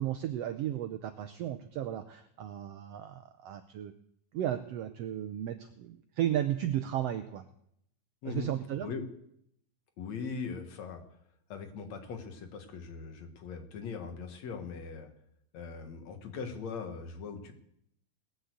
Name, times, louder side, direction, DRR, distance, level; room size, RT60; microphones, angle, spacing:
voice 1, 0.0-3.9 4.3-7.4 8.2-8.9, right 11 dB, 80° right, 9 dB, 1.4 m, -34 dB
voice 2, 10.0-11.0 11.5-15.1 15.5-17.5, left 5 dB, 60° left, 6 dB, 2.7 m, -40 dB
19.0 x 6.5 x 8.1 m, 0.73 s
omnidirectional pair, 3.6 m